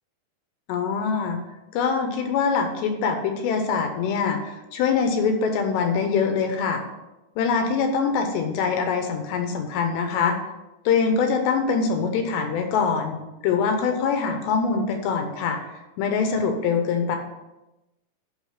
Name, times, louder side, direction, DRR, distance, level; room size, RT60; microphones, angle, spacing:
voice 1, 0.7-1.4 1.7-6.8 7.4-10.4 10.9-15.6 16.0-17.2, left 5 dB, 80° left, 5 dB, 2.9 m, -24 dB
10.5 x 4.1 x 5.6 m, 0.99 s
omnidirectional pair, 5.2 m